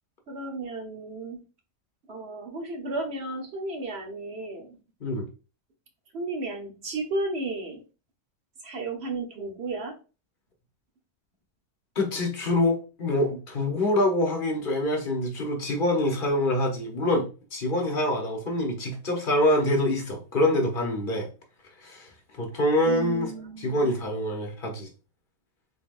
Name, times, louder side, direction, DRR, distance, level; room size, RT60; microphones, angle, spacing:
voice 1, 0.3-1.4 2.1-4.8 6.1-7.8 8.6-10.0 22.9-23.9, right 2 dB, 60° right, 1.2 m, -33 dB
voice 2, 12.0-21.3 21.8-22.1 22.4-23.3 23.6-24.9, left 1 dB, 45° left, 1.0 m, -25 dB
4.0 x 3.8 x 2.5 m
omnidirectional pair, 1.3 m